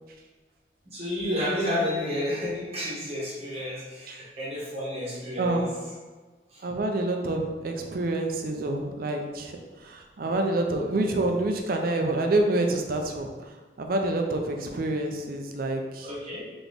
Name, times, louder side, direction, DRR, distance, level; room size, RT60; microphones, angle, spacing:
voice 1, 0.9-5.7 6.5-6.6 10.2-10.4 16.0-16.5, left 1 dB, 35° right, -6 dB, 0.9 m, -31 dB
voice 2, 5.4-5.7 6.6-13.3 13.8-16.1, right 2 dB, 55° right, 3 dB, 0.5 m, -27 dB
3.9 x 3.0 x 3.5 m, 1.4 s
head